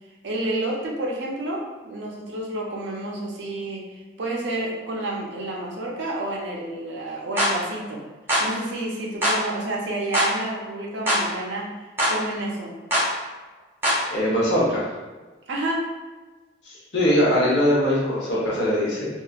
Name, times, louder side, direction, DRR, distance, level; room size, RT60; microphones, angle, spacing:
voice 1, 0.2-8.0 8.4-11.7 12.1-12.7 15.5-15.9, right 1 dB, 80° right, -2 dB, 0.6 m, -29 dB
sound 1, 7.4-7.5 8.3-8.5 9.2-9.4 10.1-10.3 11.1-11.2 12.0-12.2 12.9-13.1 13.8-14.0, equal, 10° right, 0.6 m, -21 dB
voice 2, 14.1-14.8 16.7-19.1, equal, 75° left, -6 dB, 1.0 m, -21 dB
2.8 x 2.4 x 2.4 m, 1.3 s
head